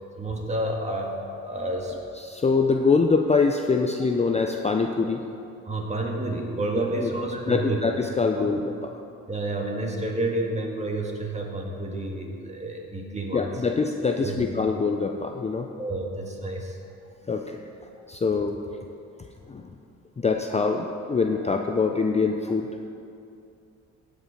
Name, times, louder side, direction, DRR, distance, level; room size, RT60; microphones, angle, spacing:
voice 1, 0.2-2.0 5.7-7.8 8.4-8.5 9.3-13.5 14.2-14.5 15.8-16.8 18.0-18.1 21.4-21.5, right 2 dB, 25° right, 0 dB, 1.8 m, -30 dB
voice 2, 2.2-5.2 7.0-7.1 7.5-8.9 13.3-15.7 17.3-17.6 18.1-18.6 19.5-19.7 20.2-22.7, left 4 dB, 20° left, 4 dB, 0.5 m, -24 dB
15.5 x 5.4 x 5.0 m, 2.6 s
cardioid pair, 90°, 30 cm